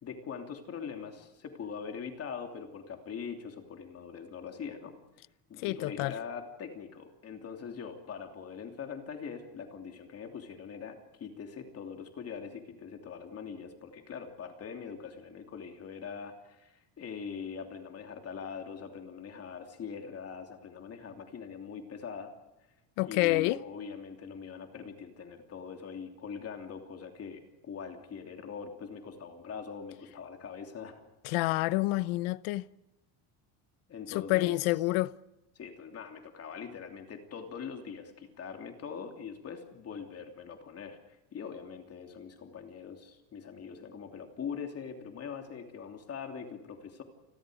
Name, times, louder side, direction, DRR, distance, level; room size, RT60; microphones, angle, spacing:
voice 1, 0.0-4.9 5.5-22.3 23.0-31.0 33.9-34.6 35.5-47.0, left 6 dB, 30° left, 3.0 m, -42 dB
voice 2, 5.6-6.1 23.0-23.6 31.2-32.6 34.1-35.1, left 19 dB, 80° left, 1.0 m, -28 dB
29.5 x 21.5 x 5.1 m
cardioid pair, 175°, 48 cm